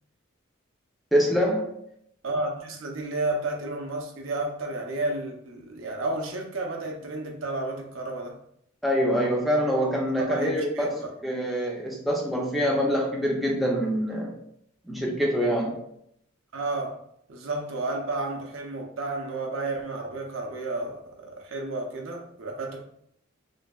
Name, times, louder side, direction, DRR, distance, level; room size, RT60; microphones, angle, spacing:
voice 1, 1.1-1.7 8.8-14.3 14.9-15.8, equal, ahead, 0.4 m, -25 dB
voice 2, 2.2-8.4 10.2-10.9 16.5-17.0 17.3-22.8, right 2 dB, 65° right, 0.5 m, -32 dB
3.1 x 2.6 x 2.3 m
head